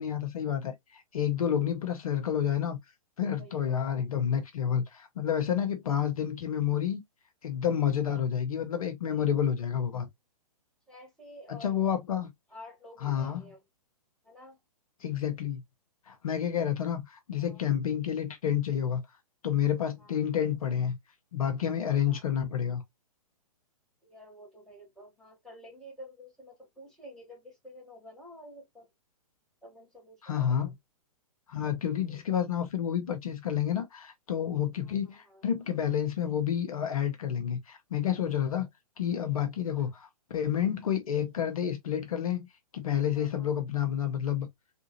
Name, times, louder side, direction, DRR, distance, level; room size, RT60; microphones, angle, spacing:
voice 1, 0.0-2.8 3.2-7.0 7.4-10.1 11.5-12.3 13.0-13.4 15.0-15.6 16.1-19.0 19.4-21.0 21.3-22.8 30.2-30.7 31.5-38.7 39.0-42.5 42.7-44.5, left 9 dB, 65° left, 0.9 m, -29 dB
voice 2, 3.4-3.8 9.0-9.4 10.9-11.8 12.5-13.6 14.2-14.6 17.4-17.6 20.0-20.2 22.0-22.2 24.0-28.9 29.6-30.7 32.1-32.2 34.8-35.4 39.7-39.9 43.1-43.5, equal, 5° left, 2.0 m, -50 dB
3.6 x 2.7 x 2.7 m
figure-of-eight pair, 120°, 19 cm